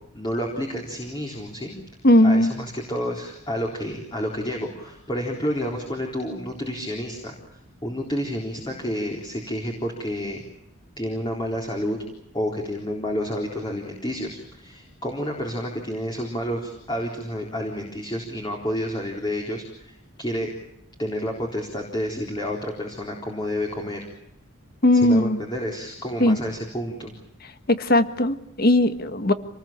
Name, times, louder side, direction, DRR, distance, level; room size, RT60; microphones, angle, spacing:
voice 1, 0.1-1.8 2.2-7.3 7.8-10.4 11.0-12.0 12.3-20.5 21.0-24.1 24.9-27.1, equal, 20° left, 0 dB, 4.0 m, -30 dB
voice 2, 2.0-2.5 24.8-25.4 26.2-26.4 27.7-29.3, left 1 dB, 45° left, 10 dB, 1.7 m, -18 dB
27.5 x 20.0 x 8.8 m, 0.78 s
head